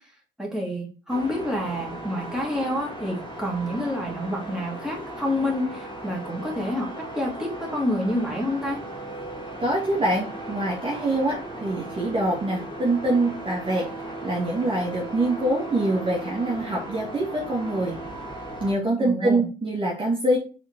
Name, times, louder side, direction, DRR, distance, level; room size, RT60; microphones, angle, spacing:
voice 1, 0.4-8.8 19.0-19.5, left 1 dB, 5° right, -2 dB, 3.1 m, -28 dB
sound 1, 1.1-18.7, right 1 dB, 25° left, 2.2 m, -37 dB
voice 2, 9.6-13.9 14.2-18.0 18.6-20.4, right 1 dB, 25° right, -4 dB, 2.1 m, -24 dB
5.7 x 4.2 x 4.6 m, 0.35 s
cardioid pair, 90°, 20 cm